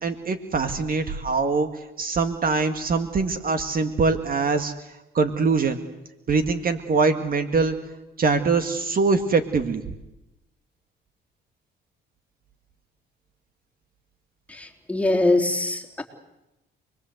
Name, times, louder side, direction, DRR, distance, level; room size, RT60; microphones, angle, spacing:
voice 1, 0.0-1.7 2.0-4.7 5.1-5.8 6.3-7.8 8.2-9.8, right 4 dB, 45° right, 7 dB, 2.0 m, -23 dB
voice 2, 14.5-16.0, left 2 dB, 5° left, 0 dB, 3.6 m, -23 dB
28.0 x 21.0 x 8.0 m, 0.95 s
cardioid pair, 90°, 20 cm